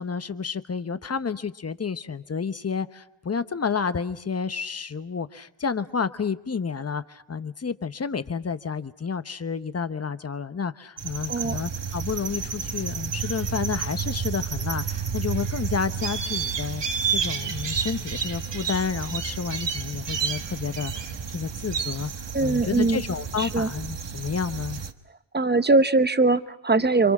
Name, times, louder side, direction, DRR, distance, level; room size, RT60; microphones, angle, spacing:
voice 1, 0.0-16.8 17.1-24.8, left 5 dB, 30° left, 12 dB, 0.9 m, -30 dB
sound 1, 11.0-24.9, right 6 dB, 60° right, 1.5 m, -30 dB
voice 2, 22.3-23.0 23.4-23.7 25.3-27.1, right 3 dB, 20° right, 12 dB, 0.9 m, -21 dB
30.0 x 26.0 x 6.0 m, 0.81 s
wide cardioid pair, 160°, 47 cm